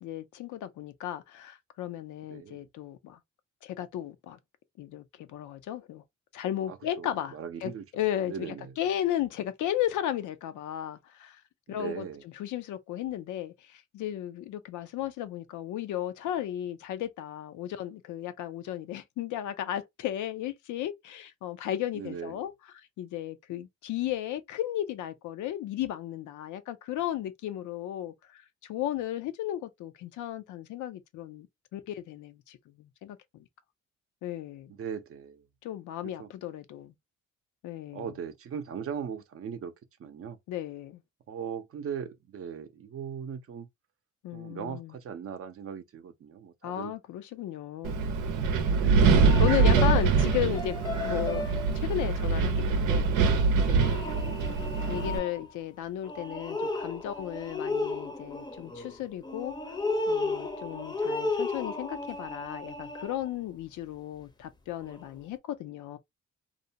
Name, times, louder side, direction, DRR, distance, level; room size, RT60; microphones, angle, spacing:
voice 1, 0.0-3.2 3.6-4.4 4.8-6.0 6.3-11.4 11.7-31.5 31.7-33.5 34.2-34.7 35.6-36.9 37.6-38.1 40.5-41.0 44.2-45.0 46.6-48.1 49.4-53.9 54.9-59.8 60.1-66.0, left 12 dB, 80° left, 0.5 m, -35 dB
voice 2, 6.7-7.8 8.3-8.7 11.7-12.2 21.9-22.3 34.7-35.4 36.2-36.3 37.9-39.7 40.0-40.4 41.3-43.7 44.3-46.9 48.7-49.3 54.1-54.4, right 7 dB, 50° right, 0.6 m, -39 dB
Wind, 47.8-55.2, right 4 dB, 90° right, 0.7 m, -24 dB
sound 1, 49.2-51.9 53.1-53.4 53.8-55.5 56.0-63.3 64.8-65.1, left 2 dB, 15° left, 0.6 m, -34 dB
2.6 x 2.1 x 2.7 m
cardioid pair, 90°, 30 cm